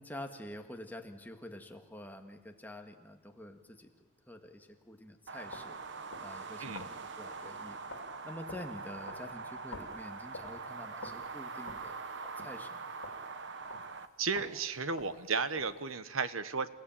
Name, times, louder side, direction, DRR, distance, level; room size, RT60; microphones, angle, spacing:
voice 1, 0.0-3.9 4.3-5.8 6.2-7.8 8.2-12.9, left 1 dB, 10° left, 4 dB, 1.7 m, -47 dB
sound 1, 5.3-14.1, right 4 dB, 55° right, 1.1 m, -43 dB
sound 2, 5.4-14.1 14.4-15.9, left 2 dB, 80° left, 3.0 m, -51 dB
voice 2, 14.2-16.7, right 5 dB, 80° right, 13 dB, 1.2 m, -34 dB
29.0 x 17.0 x 8.9 m, 1.2 s
head